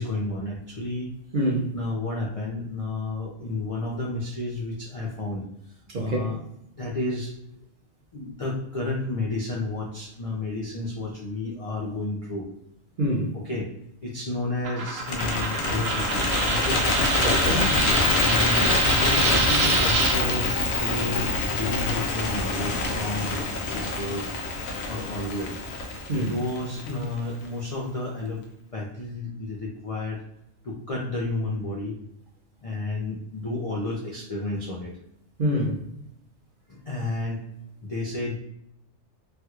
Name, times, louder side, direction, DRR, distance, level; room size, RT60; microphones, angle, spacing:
voice 1, 0.0-1.1 1.7-5.5 6.0-6.4 6.8-7.3 8.1-12.5 13.3-13.7 14.0-16.8 18.2-24.4 24.9-25.6 26.1-28.4 28.7-30.2 30.6-32.0 32.6-34.9 36.7-37.4 37.8-38.4, left 2 dB, 55° left, 0.3 m, -31 dB
voice 2, 1.3-1.7 5.9-6.2 13.0-13.3 17.2-17.8 26.1-26.3 35.4-35.7, equal, 50° right, 0.7 m, -25 dB
Coin (dropping), 14.6-20.2, right 3 dB, 80° right, 1.1 m, -26 dB
Bird, 15.0-27.2, left 3 dB, 85° left, 1.1 m, -26 dB
3.2 x 2.9 x 2.4 m
omnidirectional pair, 1.4 m